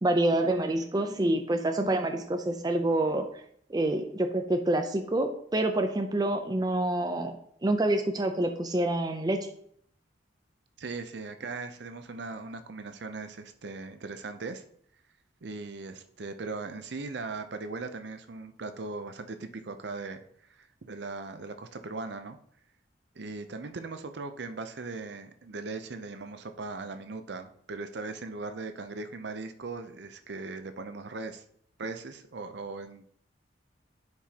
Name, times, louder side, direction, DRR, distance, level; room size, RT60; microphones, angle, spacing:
voice 1, 0.0-3.4 3.7-7.4 7.6-9.5, right 1 dB, 20° right, 6 dB, 0.5 m, -27 dB
voice 2, 10.8-14.6 15.4-20.2 20.6-22.4 23.2-31.4 31.8-33.1, right 3 dB, 65° right, 9 dB, 0.6 m, -39 dB
10.5 x 4.8 x 2.9 m, 0.65 s
head